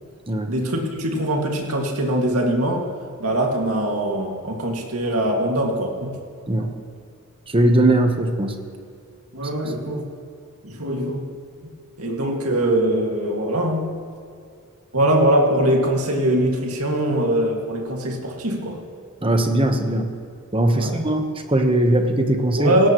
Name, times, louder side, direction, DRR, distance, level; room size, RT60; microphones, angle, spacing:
voice 1, 0.5-2.9 3.2-6.2 6.6-6.7 9.3-10.1 10.6-11.3 12.0-14.0 14.9-18.8 20.7-20.9 22.6-22.9, right 1 dB, 80° right, 1 dB, 2.1 m, -22 dB
voice 2, 7.5-8.6 9.6-9.7 19.2-20.1 20.5-21.2 21.5-22.7, right 1 dB, 25° right, 5 dB, 1.1 m, -19 dB
18.0 x 17.5 x 3.1 m, 2.4 s
head